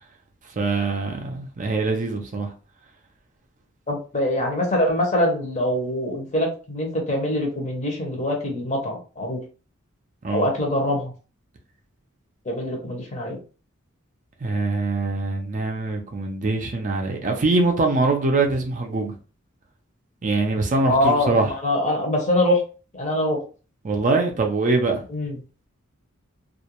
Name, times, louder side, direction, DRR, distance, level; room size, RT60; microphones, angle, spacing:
voice 1, 0.6-2.5 10.2-10.5 14.4-19.1 20.2-21.5 23.8-25.0, right 3 dB, 40° right, 0.5 m, -23 dB
voice 2, 3.9-9.4 10.3-11.1 12.5-13.4 20.8-22.6 22.9-23.4 25.1-25.4, left 1 dB, 35° left, 0.8 m, -23 dB
2.4 x 2.2 x 2.9 m
head